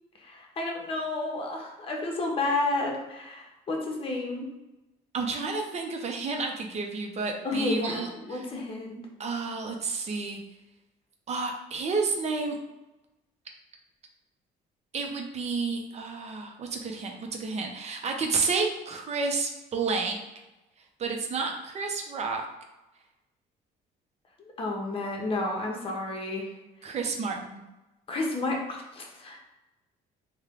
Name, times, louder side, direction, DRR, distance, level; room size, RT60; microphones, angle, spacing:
voice 1, 0.2-4.5 7.4-9.0 24.4-26.5 28.1-29.5, left 2 dB, 35° left, 0 dB, 0.8 m, -31 dB
voice 2, 5.1-8.4 9.2-10.4 11.3-12.6 14.9-20.2 21.0-22.4 26.8-27.6, right 4 dB, 40° right, 2 dB, 0.6 m, -30 dB
3.2 x 2.2 x 3.6 m, 1.0 s
cardioid pair, 110°, 17 cm